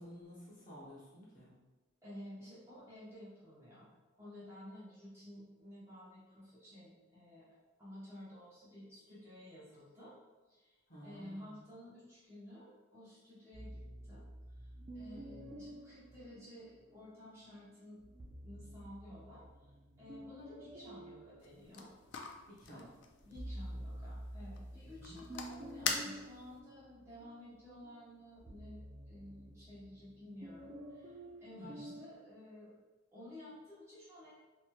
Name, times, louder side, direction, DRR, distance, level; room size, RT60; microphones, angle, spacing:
voice 1, 0.0-1.5 10.9-11.6 22.5-22.8 25.0-25.2 31.6-32.0, equal, 40° left, -7 dB, 0.8 m, -52 dB
voice 2, 2.0-3.9 4.2-7.5 7.8-10.1 10.5-10.8 11.0-14.2 14.5-18.0 18.4-19.7 20.0-21.9 22.7-22.9 23.2-32.7 33.1-34.3, left 1 dB, 15° right, -11 dB, 1.0 m, -53 dB
sound 1, 13.5-17.0 18.0-22.4 22.9-32.1, right 1 dB, 30° right, 0.3 m, -50 dB
sound 2, 21.4-26.6, left 5 dB, 60° left, 0.3 m, -44 dB
3.0 x 2.9 x 2.3 m, 1.2 s
head